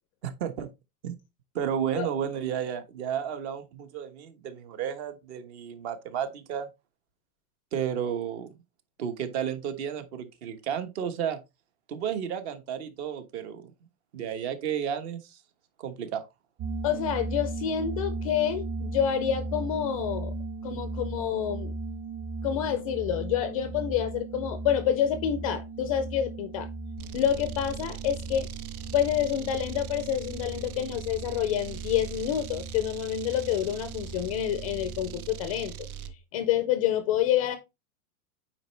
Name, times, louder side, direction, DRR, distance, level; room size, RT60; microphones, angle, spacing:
voice 1, 0.2-0.7 1.0-1.1 1.5-6.7 7.7-8.5 9.0-11.4 11.9-13.7 14.1-15.4 15.8-16.2, right 8 dB, 50° right, 1.3 m, -32 dB
sound 1, 16.6-35.3, right 3 dB, 35° right, 2.0 m, -37 dB
voice 2, 16.8-20.3 20.6-21.7 22.4-26.7 27.1-28.5 28.9-35.7 36.3-37.6, left 10 dB, 25° left, 0.4 m, -28 dB
sound 2, 27.0-36.2, right 10 dB, 85° right, 0.9 m, -41 dB
9.0 x 4.4 x 3.2 m
supercardioid pair, 165°, 42 cm